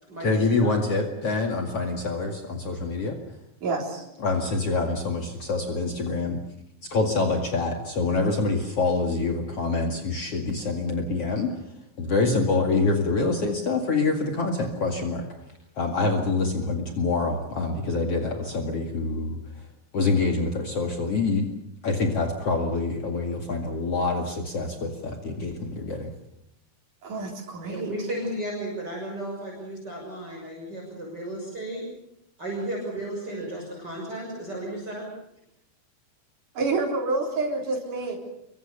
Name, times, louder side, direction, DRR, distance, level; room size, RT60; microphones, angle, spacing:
voice 1, 0.2-3.2 4.2-6.4 6.8-11.6 12.0-15.3 15.8-19.7 19.9-21.5 21.8-26.1, left 3 dB, 50° left, 3 dB, 3.0 m, -26 dB
voice 2, 3.6-4.1 27.0-27.9 36.6-38.2, right 3 dB, 75° right, -2 dB, 5.5 m, -28 dB
voice 3, 27.6-31.8 32.4-35.1, right 1 dB, 30° right, -2 dB, 7.0 m, -34 dB
29.0 x 24.0 x 6.9 m, 0.81 s
omnidirectional pair, 3.6 m